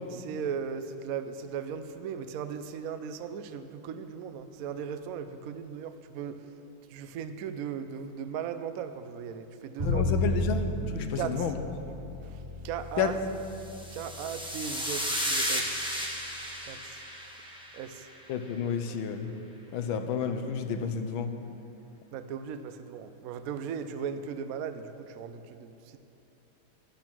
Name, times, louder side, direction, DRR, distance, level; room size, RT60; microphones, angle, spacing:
voice 1, 0.1-6.5 6.9-10.4 11.2-11.5 12.2-13.2 13.9-15.8 16.6-17.0 17.3-17.4 17.7-18.1 22.1-26.0, right 7 dB, 80° right, 10 dB, 0.7 m, -37 dB
voice 2, 9.8-10.6 10.9-11.5 13.0-13.1 18.3-19.3 19.7-21.3, left 7 dB, 80° left, 7 dB, 1.6 m, -30 dB
Bowed string instrument, 9.8-15.9, left 2 dB, 25° right, 3.2 m, -34 dB
sound 1, 13.6-18.1, equal, 5° right, 1.1 m, -34 dB
11.5 x 11.0 x 6.2 m, 3.0 s
omnidirectional pair, 2.2 m